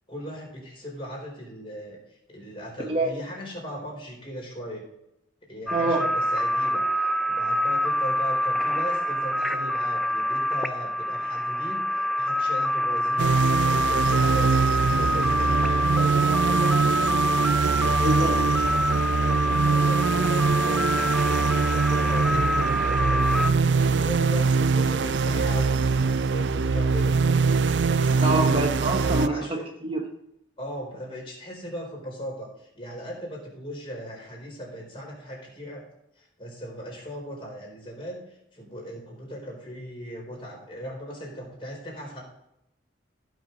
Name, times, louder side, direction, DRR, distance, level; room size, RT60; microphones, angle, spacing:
voice 1, 0.1-4.8 5.4-25.8 26.3-27.2 29.2-29.6 30.6-35.8 36.2-42.2, equal, 30° left, -2 dB, 4.2 m, -38 dB
sound 1, 5.7-23.5, equal, ahead, 0.4 m, -26 dB
voice 2, 5.7-6.0 18.0-18.3 28.2-30.0, right 2 dB, 30° right, 1 dB, 1.1 m, -26 dB
sound 2, 13.2-29.3, right 4 dB, 65° right, 0.4 m, -23 dB
16.0 x 6.2 x 4.0 m, 0.81 s
head